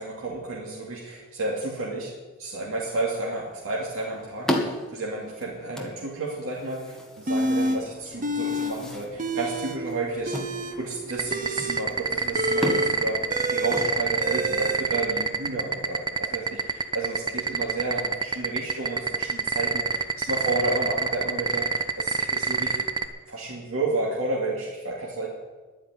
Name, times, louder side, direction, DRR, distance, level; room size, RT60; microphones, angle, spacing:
voice 1, 0.0-2.1 2.4-22.9 23.3-25.3, right 2 dB, 60° right, -4 dB, 2.5 m, -31 dB
sound 1, 3.4-14.5, equal, ahead, 1.5 m, -36 dB
sound 2, 7.3-7.8 8.2-8.7 9.0-9.8 10.2-14.8, equal, 35° right, 1.2 m, -28 dB
sound 3, 11.1-23.1, right 5 dB, 20° right, 0.7 m, -24 dB
11.5 x 8.8 x 9.5 m, 1.3 s
head